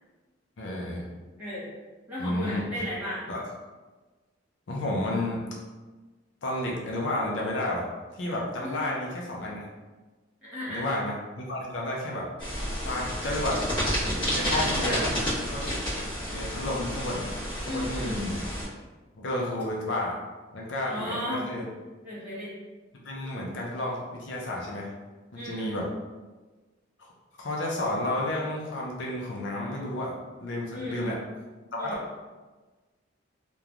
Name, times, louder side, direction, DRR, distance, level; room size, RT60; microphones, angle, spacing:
voice 1, 0.6-1.1 2.2-2.8 3.3-3.4 4.7-5.4 6.4-7.9 8.2-9.7 10.7-12.3 12.9-13.6 14.3-15.7 16.3-17.2 17.7-18.4 19.1-20.2 20.5-21.7 23.0-24.9 25.3-25.9 27.0-27.1 27.4-30.1 30.4-31.2 31.7-31.9, left 1 dB, 70° left, -3 dB, 0.5 m, -31 dB
voice 2, 1.4-1.7 2.1-3.2 8.6-8.8 10.4-10.9 14.4-15.1 17.6-18.2 20.8-21.5 22.0-22.5 25.3-25.7 30.7-31.2 31.8-32.0, left 1 dB, 10° right, -11 dB, 1.2 m, -35 dB
sound 1, 12.4-18.6, equal, 25° left, 1.1 m, -30 dB
3.1 x 2.2 x 2.4 m, 1.3 s
head